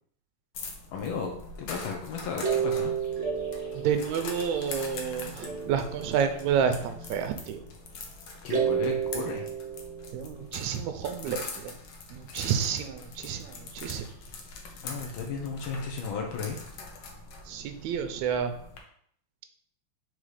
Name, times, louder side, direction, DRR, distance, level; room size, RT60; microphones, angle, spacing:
sound 1, 0.5-18.8, left 4 dB, 65° left, 1.3 m, -43 dB
voice 1, 0.9-2.9 8.4-9.5 14.8-16.6, left 5 dB, 90° left, 1 dB, 1.1 m, -34 dB
sound 2, 2.4-5.0 5.4-6.9 8.5-10.4, right 7 dB, 60° right, 1.3 m, -31 dB
voice 2, 3.7-7.6 10.1-11.7 12.1-14.1 17.5-18.5, right 7 dB, 80° right, 8 dB, 1.9 m, -30 dB
4.9 x 4.1 x 4.8 m, 0.65 s
omnidirectional pair, 3.4 m